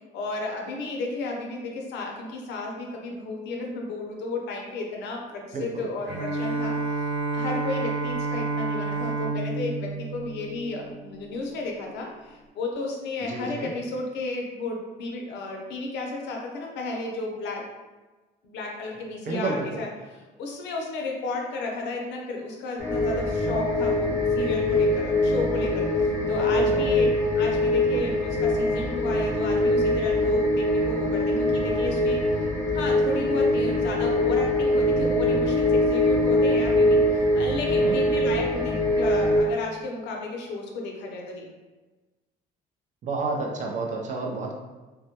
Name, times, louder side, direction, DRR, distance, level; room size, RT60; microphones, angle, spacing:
voice 1, 0.1-6.8 7.3-17.6 18.4-27.1 27.4-32.5 32.7-41.5, left 3 dB, 75° left, 0 dB, 0.6 m, -33 dB
voice 2, 5.5-5.9 13.3-13.7 19.3-19.8 26.4-26.9 37.8-38.0 43.0-44.5, right 3 dB, 40° right, 0 dB, 0.5 m, -30 dB
Bowed string instrument, 6.1-11.3, right 3 dB, 75° right, 1.1 m, -30 dB
sound 1, 22.8-39.4, left 1 dB, 15° left, 0.7 m, -23 dB
2.1 x 2.1 x 2.8 m, 1.2 s
cardioid pair, 100°, 18 cm